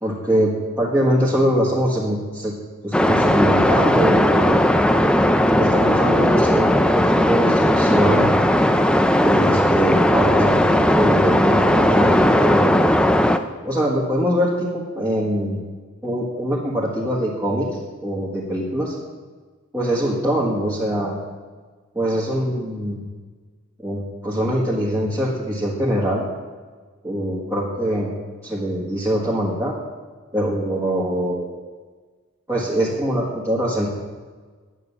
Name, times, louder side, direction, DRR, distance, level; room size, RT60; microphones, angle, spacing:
voice 1, 0.0-2.5 2.8-4.6 5.6-8.2 9.2-12.8 13.6-15.6 16.0-18.9 19.7-21.2 21.9-23.0 23.8-26.2 27.0-28.1 28.4-29.7 30.3-31.5 32.5-33.9, equal, 15° right, -5 dB, 1.6 m, -23 dB
sound 1, 2.9-13.4, left 1 dB, 5° left, 0.4 m, -17 dB
9.5 x 9.3 x 7.0 m, 1.4 s
head